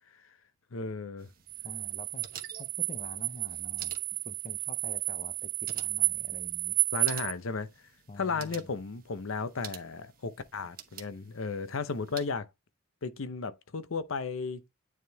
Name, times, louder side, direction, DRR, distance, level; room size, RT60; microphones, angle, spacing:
voice 1, 0.7-1.3 6.9-7.7 8.2-12.5 13.0-14.6, left 4 dB, 80° left, 0.7 m, -34 dB
sound 1, 1.2-12.3, right 9 dB, 45° right, 1.1 m, -50 dB
sound 2, 1.5-7.3, right 23 dB, 85° right, 0.4 m, -32 dB
voice 2, 1.6-2.3 2.6-3.9 4.3-6.8 8.1-8.7, left 3 dB, 35° left, 0.5 m, -47 dB
9.4 x 3.6 x 3.4 m
head